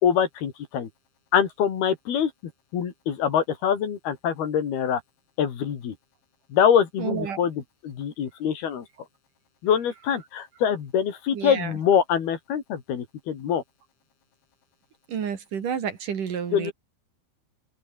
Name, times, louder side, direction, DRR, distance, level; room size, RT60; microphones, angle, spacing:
voice 1, 0.0-0.9 1.3-2.3 2.7-5.0 5.4-5.9 6.5-8.9 9.6-13.6 16.5-16.7, left 8 dB, 70° left, 4.8 m, -24 dB
voice 2, 7.0-7.4 11.3-11.7 15.1-16.7, right 7 dB, 55° right, 3.9 m, -30 dB
open air
omnidirectional pair, 4.7 m